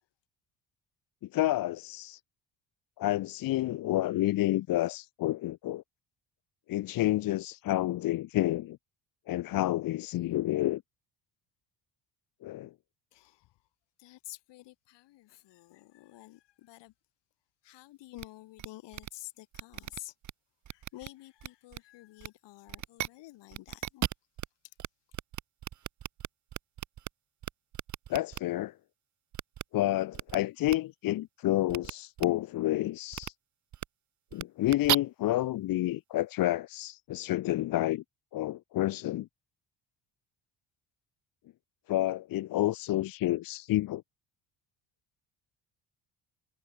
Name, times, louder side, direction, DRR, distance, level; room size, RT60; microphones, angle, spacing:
voice 1, 1.3-2.2 3.0-5.8 6.7-8.8 9.3-10.8 12.4-12.7 28.1-28.7 29.7-33.3 34.3-38.0 38.3-39.3 41.9-44.0, left 15 dB, 55° left, 0.8 m, -29 dB
voice 2, 13.1-13.5 14.0-16.9 17.6-20.1 20.7-24.1, left 17 dB, 80° left, 7.9 m, -50 dB
sound 1, 18.2-18.3 18.6-18.7 18.9-19.1 19.5-20.3 20.6-21.1 21.4-21.8 22.2-22.3 22.7-23.1 23.5-24.5 24.8-24.9 25.1-27.1 27.4-28.4 29.3-29.6 30.1-30.4 30.7-30.8 31.7-31.9 32.2-32.3 33.1-33.3 33.7-33.8 34.3-34.9, right 11 dB, 45° right, 1.3 m, -35 dB
cardioid pair, 150°, 42 cm